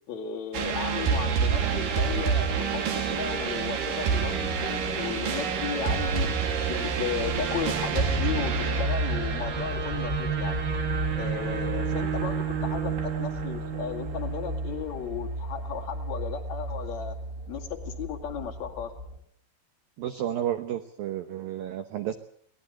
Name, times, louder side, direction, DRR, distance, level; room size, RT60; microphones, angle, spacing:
voice 1, 0.1-6.3 6.7-10.6 11.2-17.2 17.5-18.9, left 8 dB, 45° left, 3 dB, 2.7 m, -35 dB
sound 1, 0.5-19.2, right 1 dB, 20° right, 2.7 m, -35 dB
sound 2, 0.5-15.3, right 6 dB, 50° right, 3.2 m, -29 dB
voice 2, 20.0-22.1, right 11 dB, 75° right, 9 dB, 2.1 m, -31 dB
23.5 x 18.5 x 8.0 m, 0.62 s
omnidirectional pair, 5.7 m